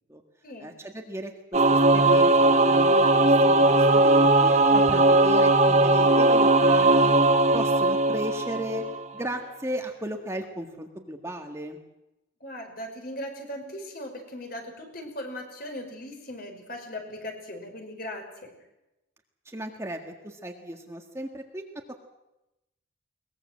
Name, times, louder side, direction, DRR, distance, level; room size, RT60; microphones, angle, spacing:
voice 1, 0.6-7.1 7.5-8.8 9.1-11.8 19.5-21.6, right 1 dB, 15° right, 3 dB, 1.8 m, -35 dB
Singing / Musical instrument, 1.5-9.0, right 2 dB, 35° right, 1.4 m, -19 dB
voice 2, 12.4-18.5, left 1 dB, 50° left, 4 dB, 5.4 m, -38 dB
22.5 x 21.0 x 7.6 m, 0.93 s
head